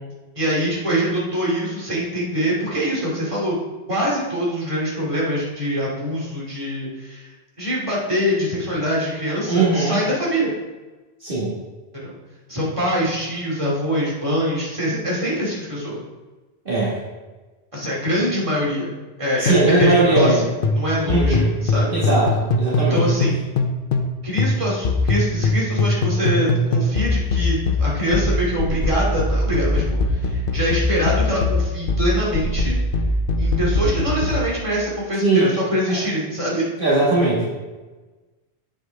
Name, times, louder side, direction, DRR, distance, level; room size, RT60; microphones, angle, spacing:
voice 1, 0.4-3.6 3.9-7.3 7.6-10.5 11.9-12.1 12.5-16.0 17.7-18.9 19.2-22.0 22.8-23.4 24.2-32.8 33.4-36.7, equal, 30° right, -5 dB, 2.6 m, -24 dB
voice 2, 9.5-10.0 11.2-11.6 16.7-17.0 19.4-20.4 21.1-21.5 21.9-23.0 35.2-35.5 35.9-36.0 36.8-37.5, right 2 dB, 55° right, -8 dB, 1.9 m, -19 dB
sound 1, 19.5-20.4 20.6-24.1 24.4-34.5, left 2 dB, 60° left, 0.9 m, -21 dB
8.0 x 7.7 x 3.4 m, 1.2 s
omnidirectional pair, 1.1 m